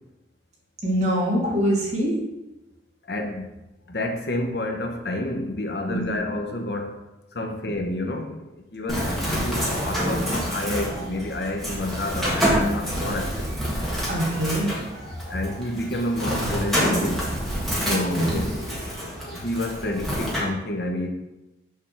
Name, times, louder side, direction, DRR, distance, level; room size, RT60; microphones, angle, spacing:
voice 1, 0.8-2.1 5.9-6.0 14.1-14.7 17.8-18.2, equal, 40° right, -6 dB, 2.4 m, -24 dB
voice 2, 3.1-3.6 3.9-7.0 7.3-13.6 15.3-17.3 17.9-21.1, left 1 dB, 65° left, 3 dB, 0.9 m, -29 dB
Bird, 8.9-20.4, equal, ahead, 1.6 m, -27 dB
6.5 x 3.6 x 6.0 m, 0.99 s
head